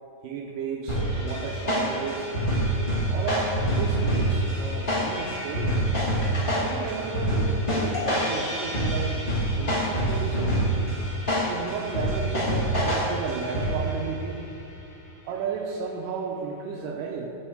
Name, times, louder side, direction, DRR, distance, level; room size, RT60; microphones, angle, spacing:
voice 1, 0.2-2.3 3.1-5.8 6.5-9.2 9.6-10.6 11.5-14.4 15.3-17.4, right 5 dB, 80° right, 1 dB, 1.9 m, -33 dB
sound 1, 0.9-14.0, right 1 dB, 75° left, 0.4 m, -26 dB
sound 2, 1.5-8.6, equal, 40° right, 1.8 m, -47 dB
9.8 x 4.7 x 4.5 m, 2.7 s
omnidirectional pair, 4.2 m